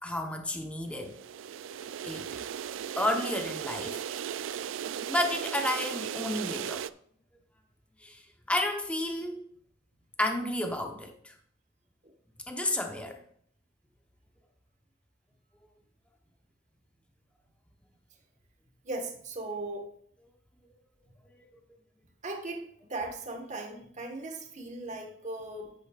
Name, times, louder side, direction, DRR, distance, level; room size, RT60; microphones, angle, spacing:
voice 1, 0.0-1.2 2.0-2.4 3.0-4.0 4.9-6.8 8.0-8.2 8.5-9.4 10.2-11.3 12.5-13.2, left 1 dB, 5° left, 3 dB, 1.0 m, -31 dB
sound 1, 0.9-6.9, right 8 dB, 80° right, 0.4 m, -36 dB
voice 2, 18.8-19.9 21.1-21.2 22.2-25.7, right 2 dB, 40° right, 2 dB, 1.5 m, -38 dB
10.0 x 8.6 x 2.5 m, 0.65 s
head